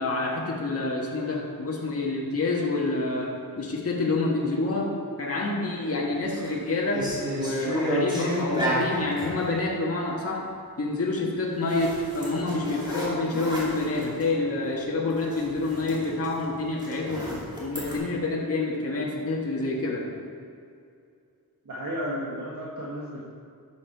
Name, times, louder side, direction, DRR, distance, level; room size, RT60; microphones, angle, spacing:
voice 1, 0.0-4.9 5.2-7.1 7.3-10.5 10.8-17.3 17.6-20.1, left 2 dB, 40° left, -3 dB, 1.5 m, -27 dB
sound 1, 6.1-6.5 6.9-9.4 11.7-14.3 14.7-14.8 15.1-18.0, equal, 10° right, 2.7 m, -31 dB
voice 2, 21.6-23.2, equal, 60° right, -6 dB, 1.7 m, -33 dB
12.0 x 7.3 x 4.6 m, 2.4 s
wide cardioid pair, 130°, 35 cm